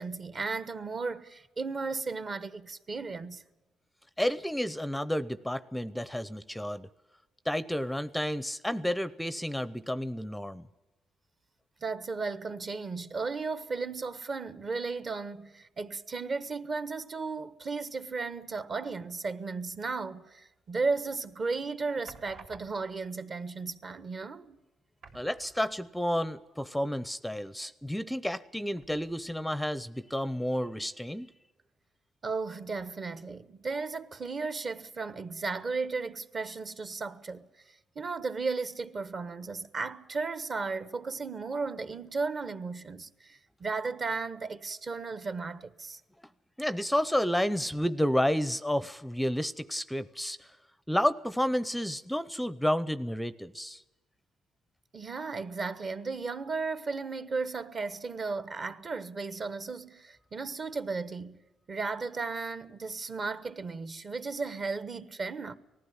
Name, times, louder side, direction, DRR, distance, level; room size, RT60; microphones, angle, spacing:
voice 1, 0.0-3.4 11.8-24.6 32.2-37.5 37.9-46.0 54.9-61.4 61.7-65.5, right 4 dB, 45° right, 1.2 m, -35 dB
voice 2, 4.2-6.9 7.5-10.6 25.1-31.3 46.6-50.5 50.9-53.8, equal, 5° left, 0.6 m, -31 dB
sound 1, 20.9-21.3 22.0-23.1 24.1-24.2 24.5-24.6 25.0-26.0 26.3-26.4 28.7-29.4 30.0-30.1, right 4 dB, 75° right, 3.6 m, -54 dB
19.5 x 15.0 x 9.5 m
cardioid pair, 90°, 0 cm